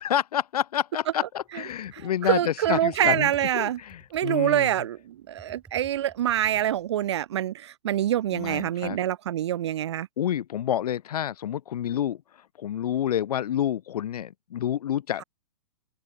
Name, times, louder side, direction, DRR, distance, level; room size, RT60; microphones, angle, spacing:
voice 1, 0.0-4.7 8.3-9.0 10.2-12.2 12.6-15.2, left 10 dB, 70° left, 0.7 m, -28 dB
Computer keyboard, 1.5-7.1, right 4 dB, 5° right, 5.4 m, -54 dB
voice 2, 1.9-3.8 4.1-10.1, right 11 dB, 45° right, 1.0 m, -26 dB
open air
hypercardioid pair, 180°, 21 cm